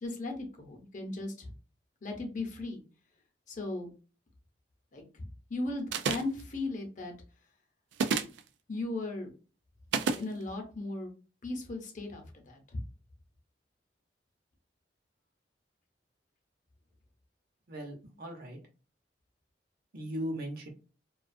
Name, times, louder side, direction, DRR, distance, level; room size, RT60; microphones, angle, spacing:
voice 1, 0.0-1.5 2.0-2.8 3.5-3.9 4.9-7.1 8.7-9.3 10.2-11.1 11.4-12.6, left 2 dB, 45° left, 2 dB, 0.7 m, -37 dB
sound 1, 5.9-6.4 7.9-8.4 9.9-10.2, right 5 dB, 90° right, 0.3 m, -29 dB
voice 2, 17.7-18.6 19.9-20.7, equal, 55° right, 2 dB, 0.8 m, -38 dB
2.4 x 2.3 x 2.4 m, 0.35 s
head